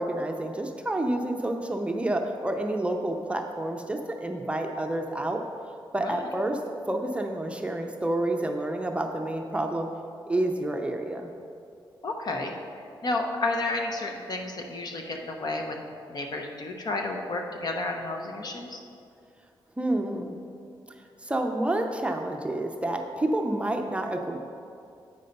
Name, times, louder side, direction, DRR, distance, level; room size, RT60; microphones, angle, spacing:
voice 1, 0.0-5.4 5.9-6.6 6.9-9.9 10.3-11.3 19.8-20.4 21.2-24.4, right 1 dB, 15° right, 3 dB, 0.6 m, -29 dB
voice 2, 12.0-12.5 13.0-15.8 16.1-18.8, left 2 dB, 50° left, 2 dB, 0.9 m, -31 dB
8.3 x 5.5 x 5.3 m, 2.5 s
cardioid pair, 110°, 9 cm